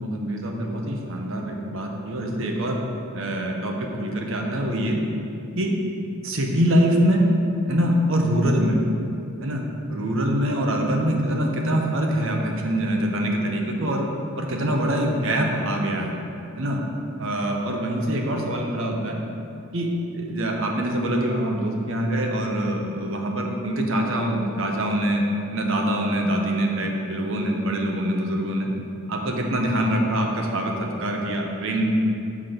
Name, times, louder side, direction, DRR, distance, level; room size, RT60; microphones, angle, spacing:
voice 1, 0.0-2.8 3.1-5.0 5.6-5.7 6.2-7.2 7.7-8.8 9.4-9.6 9.9-14.1 14.3-16.1 16.6-16.8 17.2-19.2 19.7-25.2 25.5-28.7 29.1-31.8, equal, 65° right, 1 dB, 0.9 m, -24 dB
6.1 x 5.1 x 6.1 m, 2.6 s
head